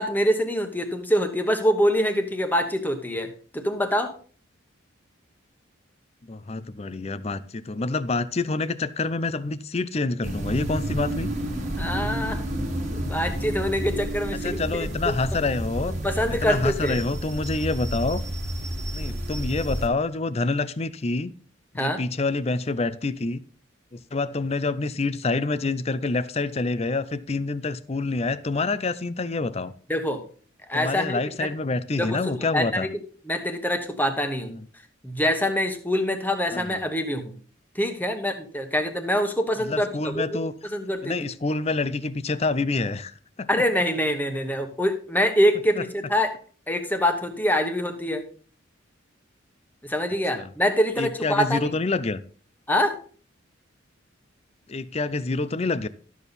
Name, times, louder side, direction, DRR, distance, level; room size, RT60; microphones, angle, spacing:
voice 1, 0.0-3.3 3.5-4.1 11.8-12.4 12.9-15.1 15.9-17.0 21.8-22.0 29.9-30.2 30.7-31.5 32.0-33.0 33.3-34.5 35.0-37.3 37.7-41.2 43.5-46.4 46.7-48.3 49.8-51.7 52.7-53.0, equal, 10° left, 6 dB, 1.2 m, -25 dB
voice 2, 6.3-11.3 14.4-15.9 16.4-18.2 18.9-21.3 21.7-23.4 23.9-29.7 30.7-32.9 34.4-34.6 36.5-36.8 39.6-40.5 41.0-43.7 45.8-45.9 50.3-50.5 51.0-52.2 54.7-55.9, left 3 dB, 30° left, 15 dB, 0.5 m, -27 dB
sound 1, 10.2-19.9, right 1 dB, 35° right, 1.6 m, -30 dB
12.5 x 7.1 x 4.1 m, 0.42 s
head